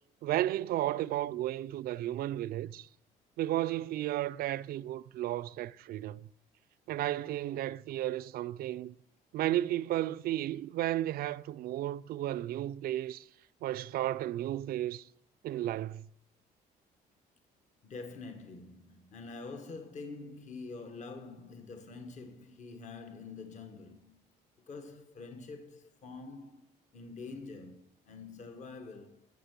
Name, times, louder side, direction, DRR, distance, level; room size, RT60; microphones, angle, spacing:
voice 1, 0.2-2.9 3.4-6.3 6.9-8.9 9.3-13.3 13.6-15.0 15.4-16.1, right 14 dB, 60° right, 0.4 m, -33 dB
voice 2, 17.8-24.2 24.7-26.6 26.9-29.3, left 3 dB, 45° left, 1.2 m, -46 dB
12.0 x 6.6 x 8.0 m
cardioid pair, 110°, 17 cm